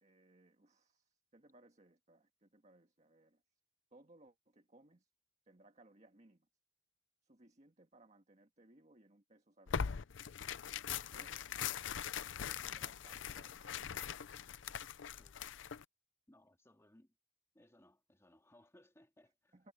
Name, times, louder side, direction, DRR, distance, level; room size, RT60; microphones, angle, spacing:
voice 1, 0.0-3.4 3.9-5.1 5.4-6.5 7.2-10.1 11.1-11.5 12.3-13.9 19.5-19.7, right 2 dB, 35° right, 1.7 m, -65 dB
Tearing, 9.7-15.8, left 7 dB, 80° left, 0.6 m, -42 dB
voice 2, 16.3-17.1 17.5-19.5, left 1 dB, 15° left, 2.1 m, -66 dB
head